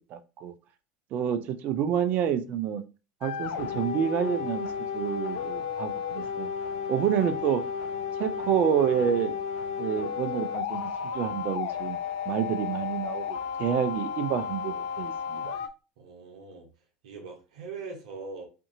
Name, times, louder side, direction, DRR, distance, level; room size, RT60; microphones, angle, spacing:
voice 1, 0.1-0.5 1.1-2.8 3.2-6.5 6.9-7.6 8.2-9.4 9.8-12.0 12.3-15.6, right 9 dB, 50° right, 11 dB, 0.4 m, -28 dB
sound 1, 3.2-15.7, left 7 dB, 65° left, 0.3 m, -33 dB
voice 2, 16.0-16.7 17.0-18.5, right 4 dB, 75° right, 1 dB, 0.8 m, -41 dB
2.6 x 2.6 x 2.6 m, 0.32 s
hypercardioid pair, 80°, 4 cm